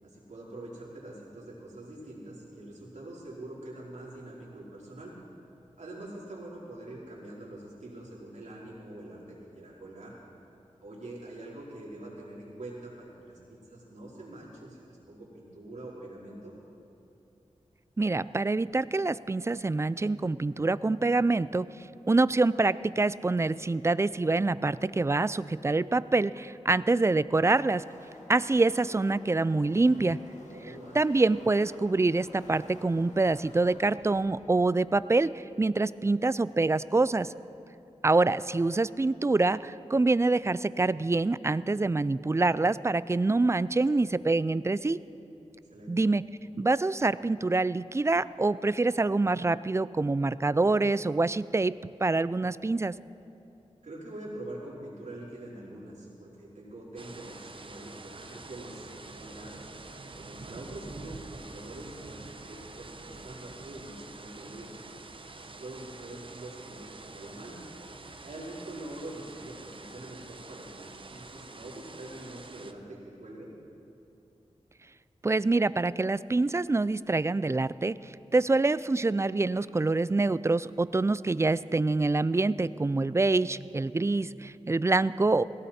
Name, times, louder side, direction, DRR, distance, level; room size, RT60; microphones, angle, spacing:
voice 1, 0.0-5.1 5.8-10.1 10.8-16.5 30.5-31.0 45.7-46.0 53.8-59.7 60.2-64.7 65.4-67.6 68.2-73.5, right 1 dB, 85° right, -5 dB, 3.9 m, -44 dB
voice 2, 18.0-21.7 22.1-27.8 28.3-30.2 30.9-37.3 38.0-45.0 45.9-46.2 46.6-51.7 52.0-52.9 75.2-78.0 78.3-85.4, right 3 dB, 25° right, 17 dB, 0.4 m, -26 dB
Car passing by / Race car auto racing, 26.6-36.7, left 1 dB, 80° left, 1.8 m, -52 dB
sound 1, 57.0-72.7, right 3 dB, 45° right, 0.9 m, -46 dB
18.0 x 16.5 x 4.3 m, 2.8 s
cardioid pair, 55°, 12 cm